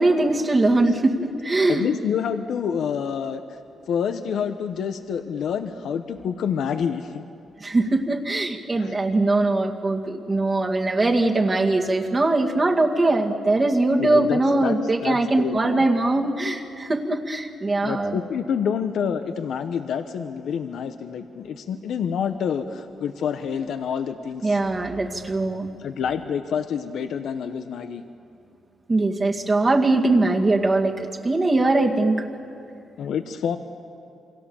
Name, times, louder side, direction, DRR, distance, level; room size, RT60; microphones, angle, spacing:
voice 1, 0.0-1.9 7.6-18.2 24.4-25.7 28.9-32.3, right 2 dB, 30° right, 0 dB, 2.1 m, -21 dB
voice 2, 1.7-3.4 3.9-7.2 8.8-9.0 14.0-14.7 15.0-15.8 17.8-24.6 25.8-28.0 33.0-33.6, left 7 dB, 75° left, 8 dB, 1.0 m, -27 dB
28.5 x 24.0 x 7.2 m, 2.6 s
cardioid pair, 100°, 0 cm